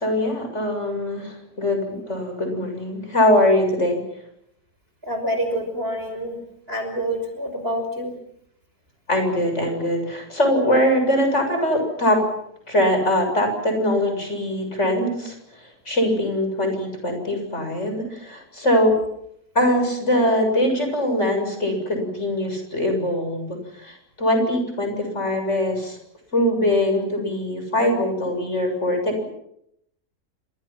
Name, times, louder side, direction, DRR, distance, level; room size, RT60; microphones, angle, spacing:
voice 1, 0.0-4.0 9.1-12.2 12.7-15.4 15.9-18.9 19.5-26.0 26.3-29.2, left 1 dB, 40° left, 5 dB, 7.7 m, -22 dB
voice 2, 5.0-6.4 6.7-8.1, equal, 35° right, 6 dB, 5.9 m, -27 dB
29.5 x 27.0 x 6.0 m, 0.75 s
omnidirectional pair, 1.8 m